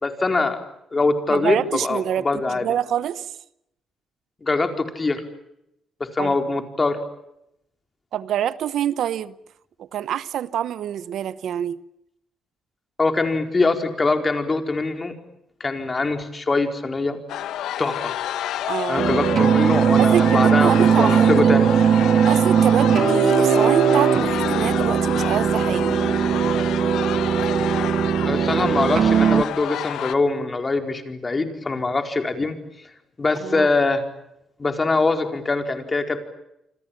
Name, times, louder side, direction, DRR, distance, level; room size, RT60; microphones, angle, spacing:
voice 1, 0.0-0.6 0.9-2.7 4.4-5.2 6.1-7.0 13.0-15.1 15.6-17.2 17.8-18.1 18.9-21.7 28.2-32.6 33.2-34.0 34.6-36.2, left 3 dB, 25° left, 4.6 m, -23 dB
voice 2, 1.3-3.3 6.2-6.3 8.1-9.3 9.8-11.8 18.6-19.1 20.0-21.5 22.3-26.1 33.4-33.7, right 10 dB, 70° right, 1.0 m, -26 dB
sound 1, 17.3-30.1, left 12 dB, 85° left, 1.3 m, -29 dB
sound 2, 19.0-29.4, right 8 dB, 55° right, 1.1 m, -19 dB
29.0 x 26.0 x 7.4 m
cardioid pair, 90°, 0 cm